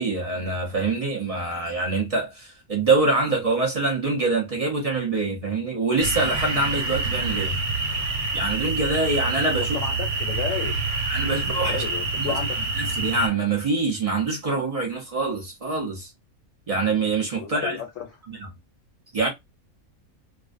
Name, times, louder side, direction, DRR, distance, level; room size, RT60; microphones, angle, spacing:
voice 1, 0.0-7.6 8.3-9.8 11.1-11.8 12.2-12.4 12.7-16.1 16.7-17.8 18.3-18.5 19.1-19.3, right 3 dB, 50° right, 0.4 m, -25 dB
sound 1, 6.0-13.3, right 3 dB, 90° right, 1.2 m, -27 dB
voice 2, 9.6-10.8 11.2-12.6 17.4-18.1, left 7 dB, 70° left, 0.9 m, -33 dB
2.5 x 2.1 x 2.4 m
omnidirectional pair, 1.5 m